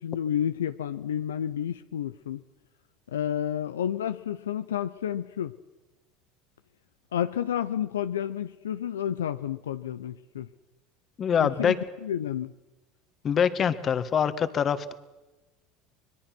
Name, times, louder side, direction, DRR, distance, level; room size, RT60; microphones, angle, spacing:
voice 1, 0.0-2.4 3.1-5.5 7.1-10.5 11.4-12.5, left 9 dB, 90° left, 11 dB, 0.7 m, -30 dB
voice 2, 11.2-11.8 13.2-14.9, left 7 dB, 40° left, 11 dB, 1.7 m, -24 dB
25.0 x 21.5 x 6.2 m, 1.1 s
hypercardioid pair, 85°, 0 cm